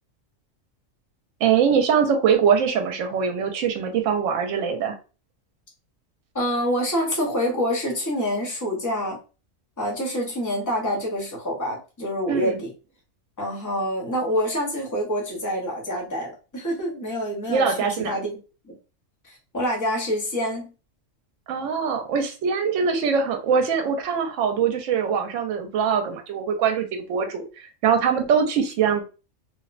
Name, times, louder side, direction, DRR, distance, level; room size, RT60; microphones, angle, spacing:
voice 1, 1.4-5.0 12.3-12.6 17.5-18.1 21.5-27.4 27.8-29.0, right 6 dB, 75° right, 4 dB, 0.9 m, -22 dB
voice 2, 6.3-9.2 9.8-12.7 13.4-18.3 18.6-18.7 19.2-20.7, equal, 20° left, -2 dB, 0.6 m, -26 dB
2.8 x 2.1 x 2.4 m, 0.32 s
omnidirectional pair, 1.3 m